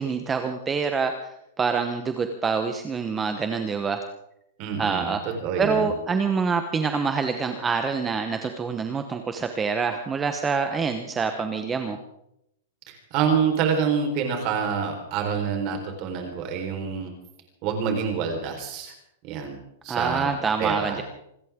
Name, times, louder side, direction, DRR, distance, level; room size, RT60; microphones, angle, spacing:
voice 1, 0.0-4.0 4.8-5.2 5.6-12.0 19.9-21.0, right 5 dB, 10° right, 6 dB, 1.0 m, -26 dB
voice 2, 4.6-5.9 12.9-17.1 17.6-18.9 19.2-19.6 19.8-20.3 20.6-21.0, right 6 dB, 35° right, 4 dB, 4.3 m, -27 dB
27.0 x 14.0 x 3.7 m, 0.79 s
supercardioid pair, 165°, 0 cm